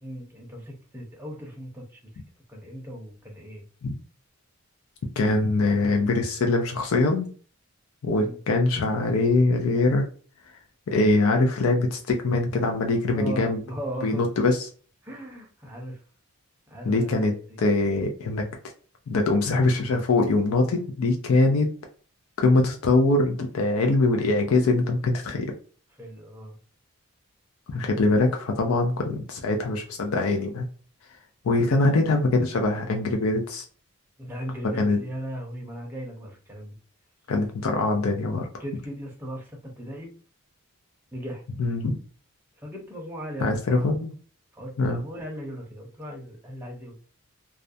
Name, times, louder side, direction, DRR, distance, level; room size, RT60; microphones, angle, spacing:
voice 1, 0.0-2.0 2.5-3.6 8.1-8.4 13.1-14.3 15.0-16.0 16.7-17.6 26.0-26.6 34.2-36.8 38.6-40.1 41.1-41.4 42.6-43.9 44.5-47.0, equal, 10° right, -1 dB, 0.6 m, -37 dB
voice 2, 5.2-7.3 8.0-10.1 10.9-13.6 14.0-14.7 16.8-18.4 19.1-21.7 22.4-25.5 27.7-30.7 31.4-33.6 34.7-35.0 37.3-38.5 41.6-41.9 43.4-44.1 44.8-45.0, left 2 dB, 80° left, 3 dB, 0.4 m, -23 dB
2.4 x 2.1 x 2.5 m, 0.40 s
head